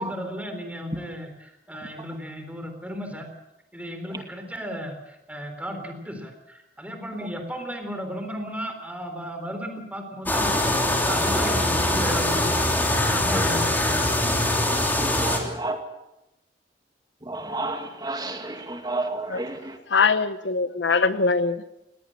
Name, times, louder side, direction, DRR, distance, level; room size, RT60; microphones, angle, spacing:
voice 1, 0.0-3.3 3.7-10.5 11.0-14.3, equal, 10° right, 3.7 m, -35 dB
sound 1, 10.2-15.4, left 1 dB, 10° left, 3.1 m, -23 dB
voice 2, 15.0-15.8 17.2-19.8, right 2 dB, 25° right, 2.3 m, -31 dB
voice 3, 19.9-21.8, left 4 dB, 90° left, 1.0 m, -22 dB
20.0 x 18.0 x 7.7 m
head